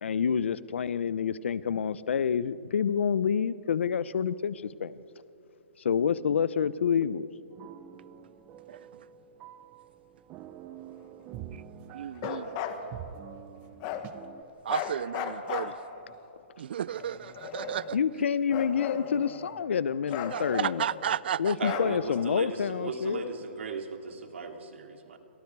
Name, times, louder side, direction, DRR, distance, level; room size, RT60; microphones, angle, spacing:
voice 1, 0.0-5.0 5.8-7.3 17.9-20.8 21.4-23.2, left 7 dB, 70° left, 0.8 m, -28 dB
sound 1, 7.5-14.4, right 10 dB, 20° right, 0.7 m, -46 dB
voice 2, 8.7-9.0 11.5-11.6 11.9-12.6 14.6-15.8 16.6-18.0 20.3-21.6, right 9 dB, 55° right, 0.5 m, -33 dB
Bark, 12.2-12.8 13.8-14.1 14.7-16.1 16.9-18.0 18.5-19.6 20.1-21.1 21.6-22.3, left 9 dB, 25° left, 1.5 m, -36 dB
voice 3, 21.6-25.2, right 4 dB, 75° right, 3.0 m, -37 dB
29.5 x 26.0 x 4.8 m
hypercardioid pair, 170°, 7 cm